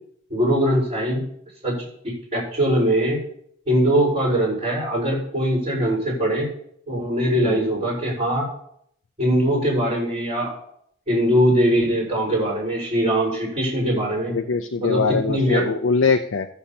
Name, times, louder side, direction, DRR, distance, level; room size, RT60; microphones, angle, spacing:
voice 1, 0.3-1.2 1.6-1.9 2.3-3.2 3.7-6.5 6.9-8.5 9.2-10.5 11.1-14.3 14.8-15.6, equal, 35° right, -9 dB, 4.7 m, -21 dB
voice 2, 14.3-16.5, left 4 dB, 85° left, 5 dB, 0.6 m, -22 dB
19.5 x 7.3 x 2.9 m, 0.70 s
head